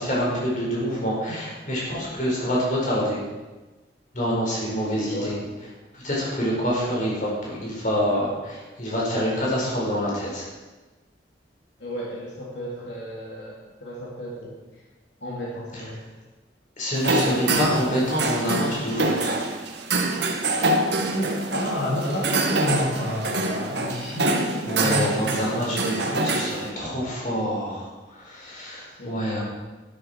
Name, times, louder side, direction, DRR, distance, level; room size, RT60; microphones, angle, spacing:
voice 1, 0.0-3.2 4.1-5.3 5.9-10.5 16.8-19.4 24.7-29.4, equal, 45° left, -5 dB, 5.0 m, -26 dB
voice 2, 11.8-14.5 15.2-16.0 17.2-17.7 21.1-26.1 28.9-29.4, left 1 dB, 80° left, -5 dB, 2.8 m, -31 dB
sound 1, 16.9-26.7, right 2 dB, 75° right, 1.5 m, -25 dB
12.0 x 11.5 x 4.6 m, 1.2 s
head